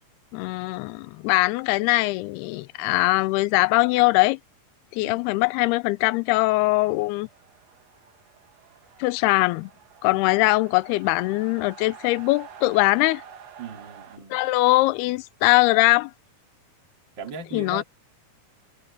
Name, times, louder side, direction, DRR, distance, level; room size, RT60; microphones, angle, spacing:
voice 1, 0.3-4.4 4.9-7.3 9.0-9.7 10.0-13.2 14.3-16.1 17.5-17.8, left 21 dB, 90° left, 2.6 m, -21 dB
sound 1, 6.6-14.2, right 7 dB, 50° right, 2.3 m, -48 dB
voice 2, 13.6-14.4 17.2-17.8, right 5 dB, 30° right, 3.5 m, -38 dB
omnidirectional pair, 4.5 m